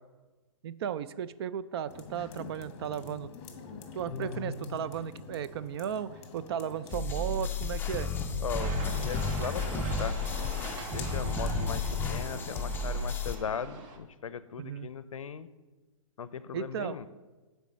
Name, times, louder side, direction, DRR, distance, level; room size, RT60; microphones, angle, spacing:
voice 1, 0.6-3.3 3.7-8.1 10.9-11.3 14.6-14.9 16.5-17.0, right 9 dB, 50° right, 15 dB, 0.4 m, -35 dB
sound 1, 1.9-13.0, left 5 dB, 35° left, 1.0 m, -45 dB
sound 2, 6.9-13.4, left 3 dB, 10° left, 0.6 m, -32 dB
voice 2, 8.4-15.5 16.2-17.1, left 7 dB, 80° left, 15 dB, 0.5 m, -38 dB
sound 3, 8.6-14.0, right 4 dB, 35° right, 0.9 m, -43 dB
6.7 x 4.6 x 6.2 m, 1.2 s
hypercardioid pair, 130°, 17 cm